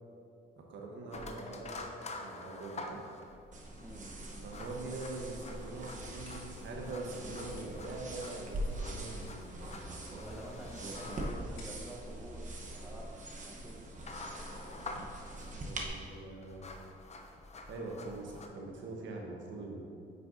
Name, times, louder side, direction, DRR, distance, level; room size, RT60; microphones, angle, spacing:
voice 1, 0.6-1.8 2.2-3.0 4.4-10.4 10.8-11.4 11.7-11.9 15.6-16.7 17.7-19.8, right 2 dB, 70° right, 0 dB, 1.1 m, -43 dB
sound 1, 1.1-18.5, left 2 dB, 35° left, 0.7 m, -48 dB
sound 2, 3.5-15.9, right 1 dB, 40° right, 1.0 m, -43 dB
voice 2, 3.8-4.1 10.2-13.1 13.5-13.8, right 1 dB, 5° right, -1 dB, 1.0 m, -49 dB
sound 3, 5.9-13.5, left 2 dB, 75° left, 1.5 m, -63 dB
9.3 x 5.5 x 2.7 m, 2.5 s
cardioid pair, 90°, 20 cm